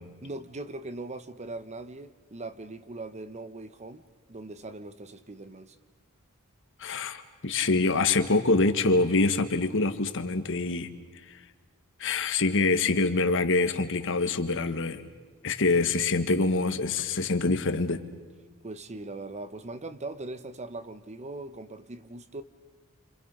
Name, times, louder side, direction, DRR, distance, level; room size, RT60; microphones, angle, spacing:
voice 1, 0.2-4.0 4.3-5.8 18.6-22.4, right 2 dB, 30° right, 0.9 m, -40 dB
voice 2, 6.8-10.9 11.3-11.4 12.0-15.0 15.4-18.0, left 3 dB, 60° left, 1.4 m, -25 dB
29.5 x 26.0 x 5.5 m
head